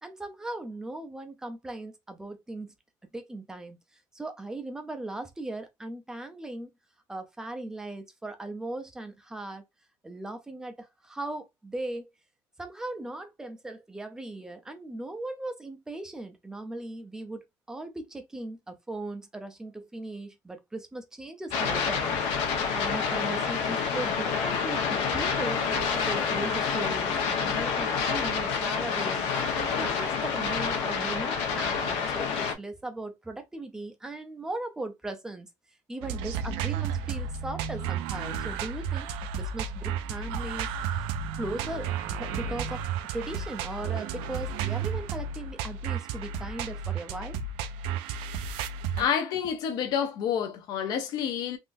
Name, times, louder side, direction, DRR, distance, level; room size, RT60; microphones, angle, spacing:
voice 1, 0.0-2.7 3.1-3.8 4.1-6.7 7.1-9.6 10.0-12.1 12.6-22.2 22.7-29.3 29.5-35.5 35.9-39.1 39.3-41.1 41.4-42.8 43.1-47.4, right 2 dB, 5° right, 0.5 m, -38 dB
sound 1, 21.5-32.5, left 6 dB, 80° left, 1.0 m, -28 dB
sound 2, 36.0-49.1, right 6 dB, 85° right, 0.4 m, -32 dB
voice 2, 49.0-51.6, left 8 dB, 50° left, 0.6 m, -28 dB
3.6 x 2.5 x 2.6 m
cardioid pair, 180°, 9 cm